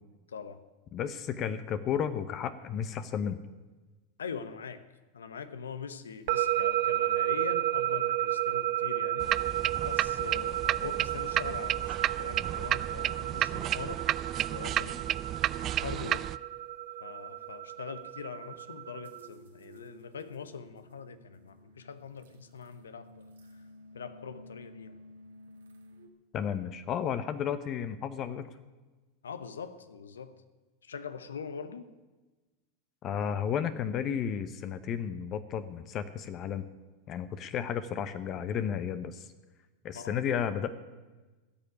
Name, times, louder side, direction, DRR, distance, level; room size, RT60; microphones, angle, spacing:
voice 1, 0.3-0.6 4.2-4.9 5.1-9.4 9.8-14.1 14.5-15.2 15.6-16.3 17.0-23.6 23.9-25.0 29.2-30.3 30.8-31.9 39.9-40.2, left 6 dB, 85° left, 1.0 m, -43 dB
voice 2, 0.9-3.4 26.3-28.5 33.0-36.7 37.1-39.3 39.8-40.7, left 8 dB, 40° left, 0.9 m, -33 dB
sound 1, 6.3-19.3, right 13 dB, 65° right, 0.9 m, -32 dB
sound 2, 9.2-16.4, right 12 dB, 40° right, 0.4 m, -32 dB
sound 3, 17.4-26.1, equal, 80° right, 1.6 m, -55 dB
15.5 x 6.9 x 9.7 m
hypercardioid pair, 95°, 0 cm